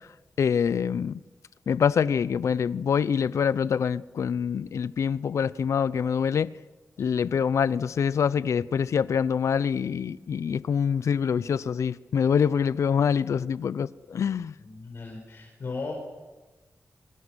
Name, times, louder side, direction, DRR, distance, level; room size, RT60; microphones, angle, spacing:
voice 1, 0.4-1.2 1.7-6.5 7.0-14.5, left 7 dB, 80° left, 0.7 m, -25 dB
voice 2, 14.6-16.0, left 3 dB, 55° left, 5.5 m, -36 dB
27.5 x 24.0 x 6.4 m
wide cardioid pair, 100°, 5 cm